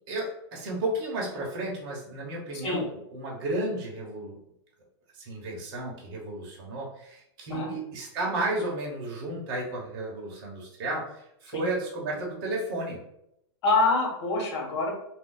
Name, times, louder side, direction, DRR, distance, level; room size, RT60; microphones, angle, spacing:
voice 1, 0.1-4.4 5.1-13.0, right 2 dB, 45° right, -2 dB, 1.1 m, -33 dB
voice 2, 13.6-14.9, left 3 dB, 70° left, 0 dB, 1.3 m, -25 dB
2.6 x 2.3 x 3.7 m, 0.78 s
supercardioid pair, 155°, 15 cm